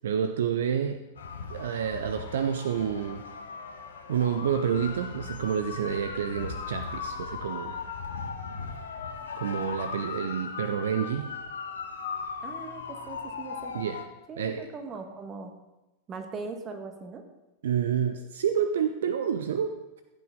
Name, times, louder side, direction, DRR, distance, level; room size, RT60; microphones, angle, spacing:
voice 1, 0.0-1.0 1.5-3.2 4.1-7.7 9.3-11.3 13.7-14.0 14.4-14.7 17.6-20.0, right 8 dB, 60° right, 8 dB, 0.5 m, -29 dB
sound 1, 1.2-14.0, left 5 dB, 65° left, 1.0 m, -38 dB
voice 2, 12.4-13.7 14.3-15.5 16.1-17.2, right 3 dB, 25° right, 5 dB, 1.5 m, -40 dB
14.5 x 8.2 x 3.7 m, 1.0 s
figure-of-eight pair, 90°, 0 cm